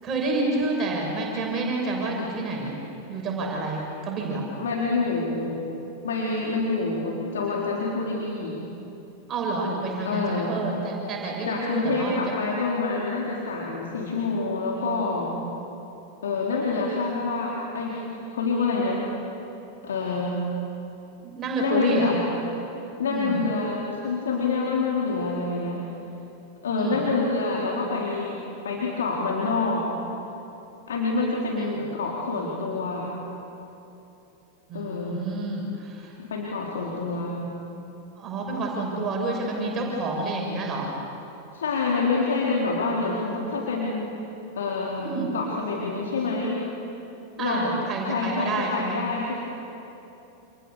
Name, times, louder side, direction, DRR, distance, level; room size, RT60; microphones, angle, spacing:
voice 1, 0.0-2.8 3.1-4.5 9.3-12.3 21.2-22.1 23.1-23.4 26.8-27.0 31.7-31.8 34.7-36.1 38.2-40.9 45.0-45.3 47.4-49.0, right 3 dB, 25° right, -1 dB, 6.5 m, -29 dB
voice 2, 4.6-5.6 6.0-8.6 10.0-10.5 11.5-15.3 16.2-19.0 19.8-20.4 21.6-22.2 23.0-25.8 26.6-29.9 30.9-33.1 34.7-35.2 36.2-37.4 41.5-44.2 44.6-46.6 47.4-47.7 48.0-49.3, left 3 dB, 65° left, -3 dB, 3.8 m, -27 dB
29.5 x 28.5 x 7.0 m, 3.0 s
figure-of-eight pair, 90°, 0 cm